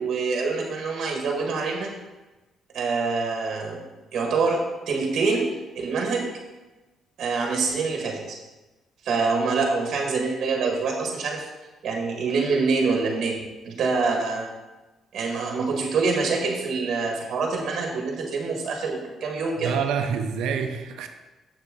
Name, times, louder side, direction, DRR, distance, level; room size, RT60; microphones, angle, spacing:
voice 1, 0.0-1.9 2.7-3.8 4.1-6.3 7.2-8.4 9.0-11.5 11.8-14.5 15.1-19.7, right 4 dB, 65° right, 1 dB, 1.6 m, -25 dB
voice 2, 19.6-21.1, right 6 dB, 85° right, 6 dB, 0.7 m, -27 dB
7.3 x 6.7 x 3.7 m, 1.1 s
cardioid pair, 90°, 0 cm